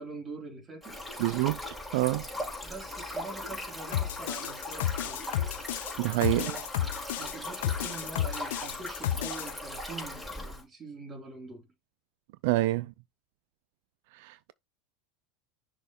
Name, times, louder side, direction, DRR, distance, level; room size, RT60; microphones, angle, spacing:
voice 1, 0.0-1.0 2.3-5.3 6.0-6.7 7.2-11.7, right 3 dB, 20° right, 2.6 m, -44 dB
Stream, 0.8-10.6, left 1 dB, ahead, 3.8 m, -39 dB
voice 2, 1.2-1.6 1.9-2.3 6.0-6.5 12.4-12.9 14.1-14.5, right 18 dB, 65° right, 0.3 m, -27 dB
sound 1, 3.9-9.5, left 12 dB, 80° left, 0.6 m, -32 dB
6.2 x 3.1 x 5.3 m
supercardioid pair, 135°, 0 cm